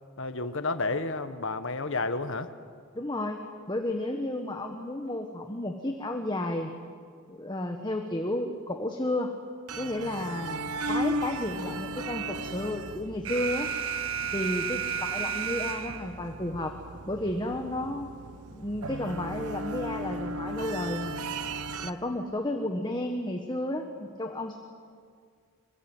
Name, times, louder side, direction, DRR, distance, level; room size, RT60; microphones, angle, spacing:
voice 1, 0.2-2.5, left 3 dB, 55° left, 10 dB, 1.4 m, -31 dB
voice 2, 2.9-6.7 7.3-9.3 9.8-10.6 10.9-13.7 14.3-16.7 17.1-18.1 18.5-21.1 21.8-24.6, left 1 dB, 20° left, 4 dB, 1.5 m, -32 dB
sound 1, 9.7-21.9, right 2 dB, 90° right, 1.1 m, -36 dB
Alarm, 13.2-16.2, right 8 dB, 60° right, 1.8 m, -32 dB
26.0 x 22.5 x 9.2 m, 2.1 s
head